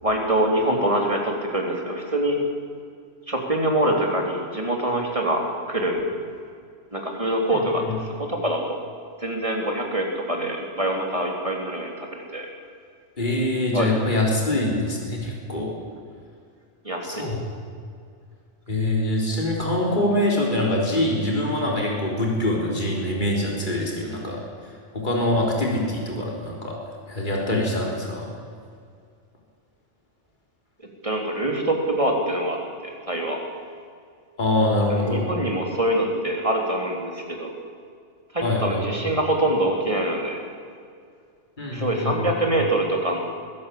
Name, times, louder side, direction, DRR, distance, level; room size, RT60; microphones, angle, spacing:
voice 1, 0.0-2.4 3.3-6.0 6.9-8.8 9.2-12.5 13.7-13.9 16.8-17.3 30.8-33.4 34.9-37.5 38.3-40.4 41.7-43.2, right 1 dB, 30° right, 1 dB, 3.7 m, -25 dB
voice 2, 13.2-15.7 17.0-17.4 18.7-26.8 27.1-28.3 34.4-35.3 38.4-38.8 41.6-42.3, left 1 dB, 45° left, -2 dB, 4.2 m, -24 dB
22.0 x 16.5 x 8.6 m, 2.2 s
omnidirectional pair, 1.2 m